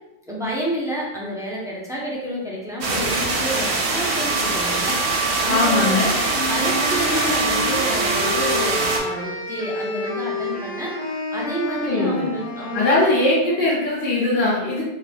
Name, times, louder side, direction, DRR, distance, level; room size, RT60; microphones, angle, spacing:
voice 1, 0.3-6.0 6.4-11.1 11.3-13.1, right 1 dB, 5° right, -5 dB, 0.5 m, -29 dB
sound 1, 2.8-9.0, right 3 dB, 65° right, 0.8 m, -22 dB
voice 2, 5.5-6.1 11.8-12.3 12.7-14.8, left 2 dB, 70° left, -8 dB, 1.1 m, -20 dB
sound 2, 5.9-13.3, left 2 dB, 50° left, 0.8 m, -29 dB
2.6 x 2.5 x 3.3 m, 0.91 s
omnidirectional pair, 1.1 m